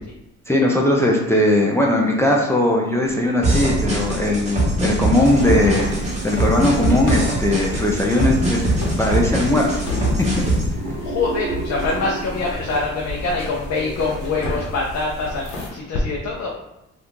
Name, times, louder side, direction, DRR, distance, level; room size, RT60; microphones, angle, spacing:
voice 1, 0.5-9.8 10.2-10.5, left 1 dB, 10° left, -1 dB, 0.5 m, -19 dB
sound 1, 3.4-10.7, right 1 dB, 20° right, 1.3 m, -22 dB
sound 2, 5.2-15.7, left 2 dB, 75° left, 1.1 m, -32 dB
sound 3, 10.8-15.5, right 4 dB, 70° right, 0.6 m, -34 dB
voice 2, 11.0-16.5, left 3 dB, 60° left, -3 dB, 0.6 m, -24 dB
2.8 x 2.5 x 3.5 m, 0.90 s
cardioid pair, 90°, 30 cm